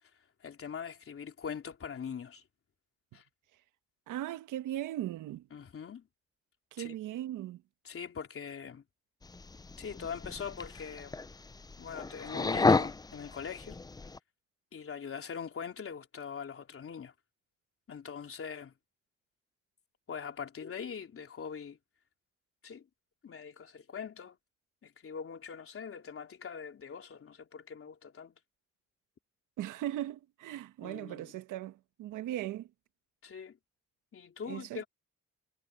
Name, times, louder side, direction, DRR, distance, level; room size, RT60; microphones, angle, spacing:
voice 1, 0.4-2.4 3.1-3.2 5.5-6.1 6.8-7.0 7.8-8.8 9.8-11.2 11.8-13.8 14.7-17.1 17.9-18.7 20.1-21.8 22.6-22.9 23.2-24.4 24.8-28.4 30.8-31.4 33.2-33.6 34.1-34.9, left 6 dB, 45° left, 3.6 m, -42 dB
voice 2, 4.1-5.5 6.7-7.6 29.6-32.7 34.5-34.8, right 13 dB, 90° right, 1.4 m, -38 dB
sound 1, 9.2-14.2, left 3 dB, 15° left, 0.5 m, -32 dB
cardioid pair, 90°, 30 cm